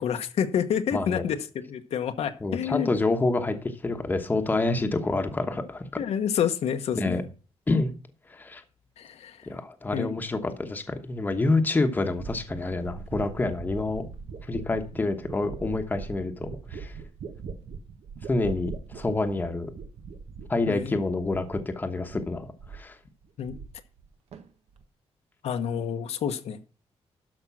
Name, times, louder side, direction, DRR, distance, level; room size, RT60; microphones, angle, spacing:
voice 1, 0.0-2.9 6.0-7.2 9.0-9.5 9.9-10.2 20.7-21.0 23.4-23.5 25.4-26.6, left 8 dB, 75° left, 1.1 m, -28 dB
voice 2, 0.9-1.2 2.4-5.9 7.0-7.2 7.7-7.9 8.3-8.6 9.5-14.1 14.5-16.9 18.3-19.7 20.5-23.0, left 2 dB, 15° left, 1.1 m, -27 dB
sound 1, 12.1-21.8 22.1-22.9 23.2-24.1 24.3-24.8, right 5 dB, 70° right, 1.2 m, -41 dB
12.5 x 5.3 x 6.0 m
wide cardioid pair, 175°, 11 cm